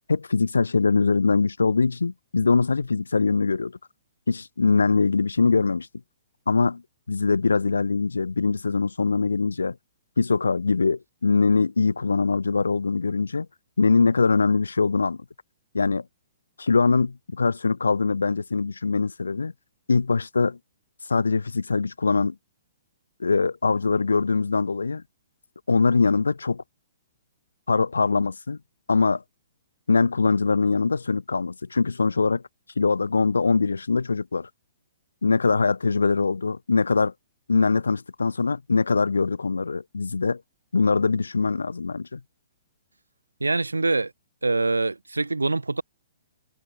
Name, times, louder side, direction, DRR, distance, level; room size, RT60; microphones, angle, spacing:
voice 1, 0.1-3.7 4.3-5.9 6.5-6.8 7.1-9.7 10.2-13.5 13.8-15.2 15.7-16.0 16.6-19.5 19.9-20.6 21.1-22.3 23.2-25.0 25.7-26.6 27.7-28.6 28.9-29.2 29.9-32.4 32.8-34.5 35.2-37.1 37.5-40.4 40.7-42.2, left 4 dB, 80° left, 1.6 m, -22 dB
voice 2, 43.4-44.1 44.4-45.8, right 3 dB, 90° right, 2.4 m, -24 dB
figure-of-eight pair, 125°, 0 cm